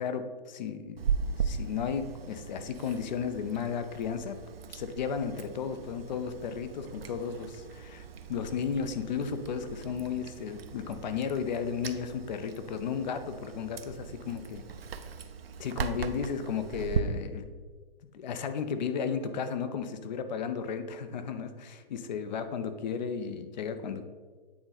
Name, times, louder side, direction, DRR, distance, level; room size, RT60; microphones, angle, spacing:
voice 1, 0.0-4.4 4.7-14.7 15.6-17.4 18.1-24.1, left 6 dB, 50° left, 9 dB, 0.7 m, -34 dB
Chewing mastication, 1.0-17.0, right 6 dB, 85° right, 0.6 m, -38 dB
8.6 x 3.9 x 4.1 m, 1.4 s
hypercardioid pair, 135°, 29 cm